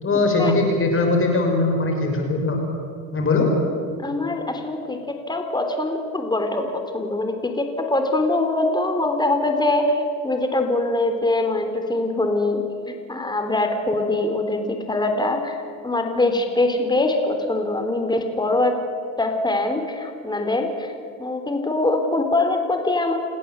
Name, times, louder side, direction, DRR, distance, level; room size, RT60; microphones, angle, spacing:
voice 1, 0.0-2.6 3.1-3.5, left 3 dB, 30° left, 2 dB, 6.4 m, -20 dB
voice 2, 4.0-18.7 19.2-20.9 21.2-23.2, left 2 dB, 10° left, 5 dB, 3.6 m, -23 dB
28.5 x 17.5 x 8.1 m, 2.4 s
supercardioid pair, 95°, 41 cm